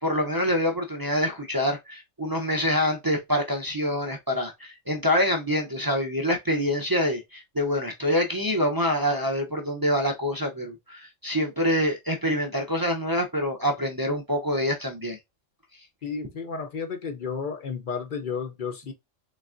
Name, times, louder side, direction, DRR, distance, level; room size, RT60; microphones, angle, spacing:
voice 1, 0.0-15.2, equal, 30° right, 0.4 m, -26 dB
voice 2, 16.0-18.9, left 5 dB, 50° left, 0.6 m, -32 dB
3.9 x 3.4 x 2.5 m
omnidirectional pair, 1.3 m